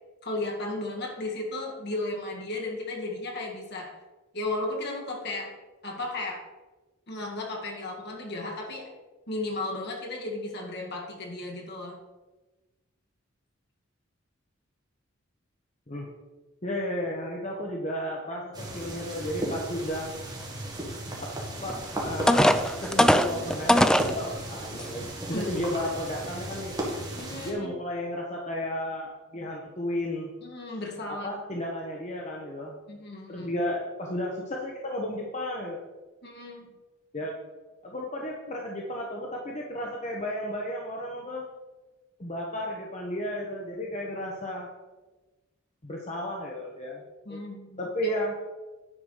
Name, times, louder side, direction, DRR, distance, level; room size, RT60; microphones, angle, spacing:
voice 1, 0.2-4.0 4.3-5.5 5.8-6.5 7.1-8.9 9.3-12.0 25.3-25.6 27.2-27.8 30.4-31.4 32.9-33.5 36.2-36.7 47.3-48.2, left 2 dB, 55° left, 0 dB, 2.1 m, -35 dB
voice 2, 16.6-20.1 21.2-21.3 21.6-26.7 27.4-30.3 31.2-32.8 33.3-35.8 37.1-37.3 37.8-41.5 42.2-44.7 45.8-47.0 47.3-47.4 47.8-48.3, left 1 dB, 35° left, -1 dB, 1.2 m, -33 dB
sound 1, 18.5-27.5, right 1 dB, 20° right, 2.1 m, -36 dB
sound 2, 21.7-21.8 22.3-24.1 24.8-24.9 25.4-25.6, equal, 5° left, 0.4 m, -20 dB
10.0 x 4.7 x 6.6 m, 1.2 s
head